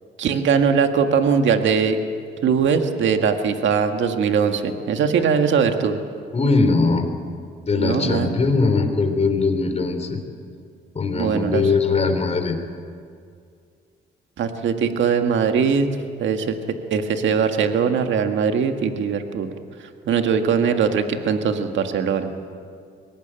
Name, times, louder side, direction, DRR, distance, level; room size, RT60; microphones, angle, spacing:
voice 1, 0.2-2.0 2.4-6.0 7.8-8.3 11.1-11.6 14.4-15.9 16.2-16.6 16.9-19.5 20.1-22.3, right 6 dB, 70° right, 6 dB, 1.8 m, -20 dB
voice 2, 6.3-7.0 7.7-10.2 11.0-12.5, left 3 dB, 35° left, 6 dB, 3.7 m, -20 dB
23.0 x 18.5 x 9.0 m, 2.2 s
cardioid pair, 90°, 20 cm